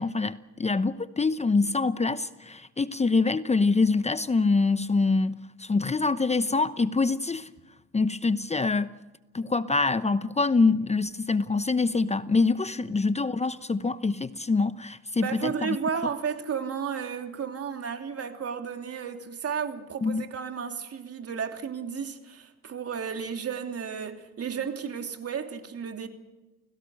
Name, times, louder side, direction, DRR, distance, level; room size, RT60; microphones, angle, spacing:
voice 1, 0.0-7.5 7.9-9.0 9.3-15.8 20.0-20.2, left 3 dB, 20° left, 0.9 m, -25 dB
voice 2, 15.2-26.1, right 6 dB, 50° right, 3.1 m, -33 dB
30.0 x 17.5 x 6.6 m
supercardioid pair, 70°, 31 cm